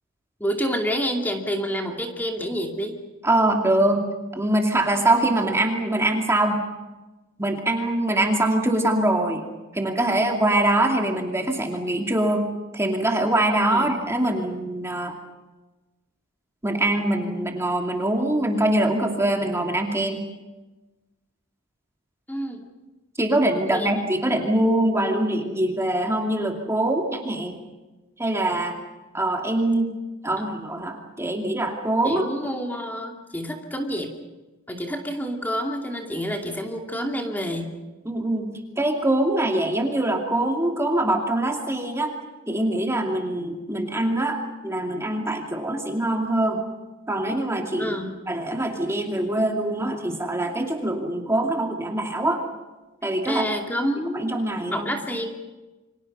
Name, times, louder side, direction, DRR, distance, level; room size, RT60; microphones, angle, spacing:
voice 1, 0.4-2.9 13.7-14.0 22.3-22.6 23.6-24.0 32.0-34.1 34.7-37.7 47.8-48.2 53.2-54.3 54.7-55.3, equal, 10° left, 2 dB, 2.6 m, -28 dB
voice 2, 3.2-4.0 4.3-6.6 7.4-9.4 9.7-12.5 12.7-15.1 16.6-20.2 23.2-27.6 28.2-28.8 29.1-29.9 30.2-32.3 38.1-42.1 42.5-46.6 47.1-48.0 48.3-52.4 53.0-53.4 54.1-54.9, right 1 dB, 15° right, 2 dB, 2.5 m, -23 dB
29.0 x 25.5 x 5.5 m, 1.1 s
head